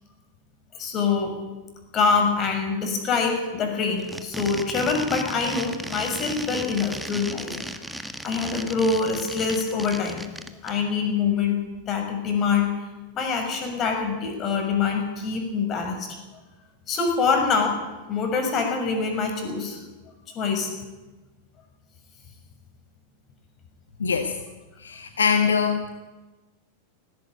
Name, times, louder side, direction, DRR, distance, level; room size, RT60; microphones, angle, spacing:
voice 1, 0.7-1.3 1.9-10.2 10.6-11.6 11.9-12.7 13.1-16.2 16.9-17.8 18.1-19.8 20.3-20.7, left 5 dB, 30° left, 3 dB, 6.5 m, -25 dB
sound 1, 4.0-10.7, right 1 dB, 5° right, 1.6 m, -35 dB
voice 2, 24.0-24.4 24.8-26.0, left 6 dB, 70° left, 6 dB, 1.6 m, -23 dB
18.5 x 17.0 x 9.2 m, 1.2 s
figure-of-eight pair, 90°, 0 cm